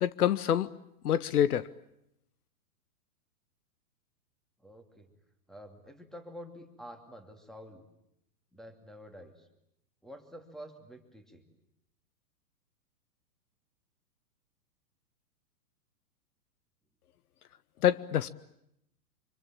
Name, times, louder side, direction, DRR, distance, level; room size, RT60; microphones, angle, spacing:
voice 1, 0.0-0.7 1.0-1.7 17.8-18.3, left 10 dB, 70° left, 17 dB, 1.1 m, -26 dB
voice 2, 4.6-5.1 5.5-7.9 8.5-9.5 10.0-11.5, equal, ahead, 7 dB, 2.7 m, -48 dB
25.5 x 25.5 x 8.9 m, 0.78 s
hypercardioid pair, 130°, 47 cm